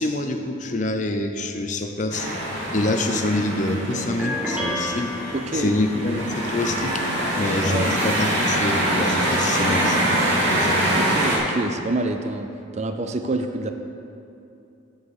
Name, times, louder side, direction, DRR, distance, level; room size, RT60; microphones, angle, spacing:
voice 1, 0.0-2.3 2.7-10.9, left 2 dB, 35° left, 5 dB, 0.6 m, -26 dB
sound 1, 2.1-11.4, right 1 dB, 75° right, 2.1 m, -24 dB
sound 2, 4.2-5.9, left 1 dB, 5° right, 1.2 m, -30 dB
voice 2, 5.3-5.8 7.7-7.9 10.9-13.7, right 2 dB, 35° right, 6 dB, 0.4 m, -27 dB
7.5 x 7.0 x 6.5 m, 2.7 s
head